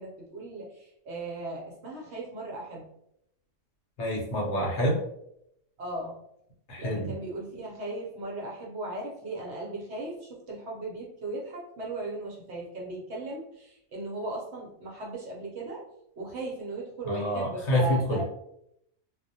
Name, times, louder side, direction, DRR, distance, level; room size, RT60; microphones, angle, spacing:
voice 1, 0.0-2.9 5.8-6.1 6.8-15.8 16.2-18.2, right 2 dB, 65° right, -3 dB, 0.8 m, -37 dB
voice 2, 4.0-5.0 6.7-7.1 17.0-18.2, equal, 60° left, -3 dB, 1.0 m, -27 dB
2.3 x 2.1 x 2.6 m, 0.76 s
omnidirectional pair, 1.4 m